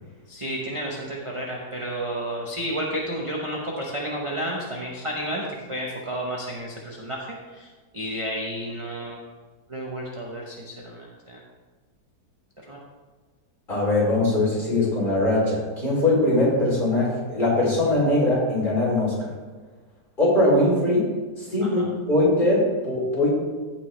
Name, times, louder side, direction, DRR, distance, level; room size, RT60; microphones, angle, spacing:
voice 1, 0.3-9.2 9.7-11.4 12.6-12.8 21.6-21.9, equal, 25° right, -2 dB, 0.8 m, -31 dB
voice 2, 13.7-19.3 20.2-21.1 21.4-23.3, left 1 dB, 30° left, -6 dB, 3.6 m, -21 dB
15.0 x 5.8 x 3.3 m, 1.4 s
omnidirectional pair, 1.8 m